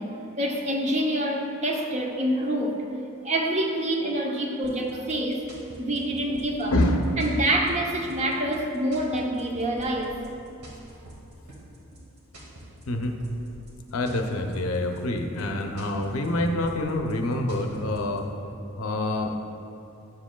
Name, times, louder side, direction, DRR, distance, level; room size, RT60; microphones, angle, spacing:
voice 1, 0.0-2.9 3.2-5.5 5.8-6.7 7.2-10.2, right 1 dB, 30° right, 1 dB, 0.6 m, -26 dB
sound 1, 4.6-18.2, right 1 dB, 90° right, 1.7 m, -46 dB
voice 2, 6.7-7.3 12.9-13.2 13.9-18.3 18.8-19.3, left 1 dB, 70° left, 4 dB, 0.6 m, -26 dB
11.0 x 7.3 x 2.2 m, 2.7 s
head